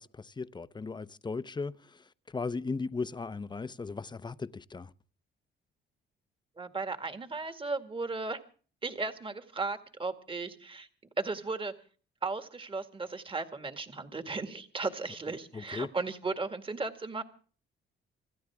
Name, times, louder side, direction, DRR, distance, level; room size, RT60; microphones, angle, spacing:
voice 1, 0.0-4.9 15.5-15.9, left 4 dB, 20° left, 0.8 m, -37 dB
voice 2, 6.6-8.4 8.8-10.9 11.2-11.7 12.2-17.2, right 3 dB, 25° right, 2.1 m, -35 dB
27.0 x 13.5 x 3.6 m
cardioid pair, 90°, 20 cm